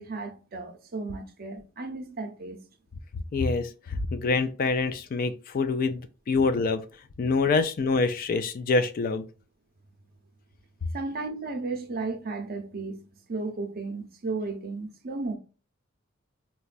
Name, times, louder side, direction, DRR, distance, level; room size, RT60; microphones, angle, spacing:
voice 1, 0.0-2.6 10.9-13.0 13.3-15.4, right 3 dB, 50° right, 0.6 m, -34 dB
voice 2, 3.3-6.8 7.2-9.2, left 3 dB, 45° left, 0.3 m, -26 dB
4.1 x 2.2 x 2.4 m
head